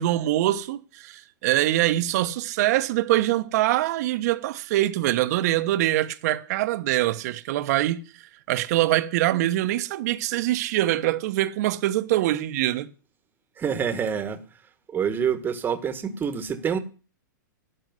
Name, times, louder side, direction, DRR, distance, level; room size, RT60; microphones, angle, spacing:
voice 1, 0.0-8.0 8.5-12.9, right 15 dB, 55° right, 1.2 m, -24 dB
voice 2, 13.6-14.4 14.9-16.8, right 7 dB, 20° right, 1.5 m, -26 dB
12.0 x 6.9 x 9.5 m
hypercardioid pair, 135°, 11 cm